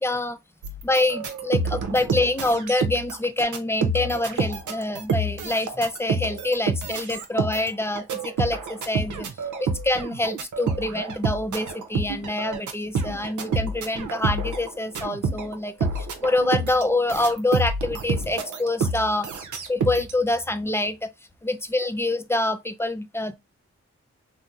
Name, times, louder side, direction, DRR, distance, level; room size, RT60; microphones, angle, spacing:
voice 1, 0.0-0.4 0.8-9.3 9.6-21.1 21.4-23.4, left 2 dB, 10° left, 0.5 m, -26 dB
sound 1, 0.6-15.6 15.8-20.1, right 3 dB, 80° right, 0.6 m, -28 dB
2.8 x 2.0 x 3.5 m
cardioid pair, 45°, 29 cm